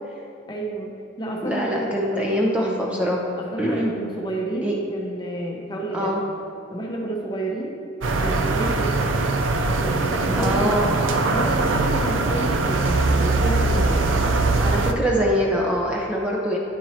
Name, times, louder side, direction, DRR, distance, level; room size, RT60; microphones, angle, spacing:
voice 1, 0.5-2.2 2.6-3.0 3.4-6.2 6.7-7.8 8.2-9.1 9.7-10.8 11.3-14.1, right 1 dB, 20° left, -1 dB, 0.9 m, -30 dB
voice 2, 1.4-3.2 3.6-3.9 4.6-4.7 5.9-6.2 10.4-11.0 14.6-16.6, equal, 5° right, -3 dB, 0.7 m, -23 dB
sound 1, 8.0-14.9, right 3 dB, 85° right, 0.5 m, -21 dB
9.3 x 4.5 x 4.3 m, 2.7 s
head